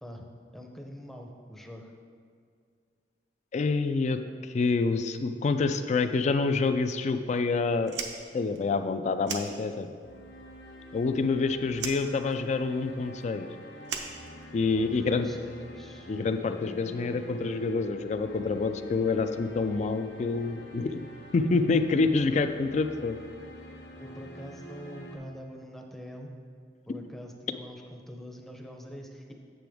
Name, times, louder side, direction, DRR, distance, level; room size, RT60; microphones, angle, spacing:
voice 1, 0.5-1.9 14.7-16.1 22.3-22.4 24.0-26.3 26.9-29.3, equal, ahead, 1 dB, 0.6 m, -44 dB
voice 2, 3.5-8.0 8.3-9.9 10.9-13.5 14.5-15.3 16.1-21.1 21.3-23.2, left 4 dB, 40° left, 9 dB, 0.3 m, -27 dB
Fire, 7.8-10.1 10.4-11.4 11.7-14.9, right 6 dB, 75° right, 0.7 m, -39 dB
sound 1, 10.0-25.2, right 1 dB, 65° left, 1.0 m, -46 dB
7.7 x 6.8 x 3.5 m, 2.2 s
head